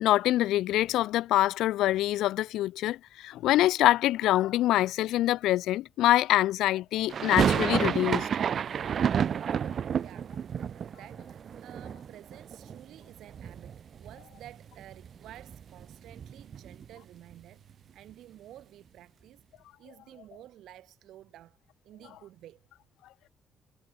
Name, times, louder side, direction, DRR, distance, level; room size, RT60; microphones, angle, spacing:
voice 1, 0.0-8.3, left 15 dB, 85° left, 1.5 m, -25 dB
sound 1, 7.1-13.0 13.3-14.1 14.4-14.5 14.8-16.9, right 8 dB, 55° right, 0.9 m, -30 dB
voice 2, 10.0-10.3 10.6-19.4 19.8-21.6 21.8-22.7, right 13 dB, 80° right, 3.4 m, -51 dB
cardioid pair, 90°, 0 cm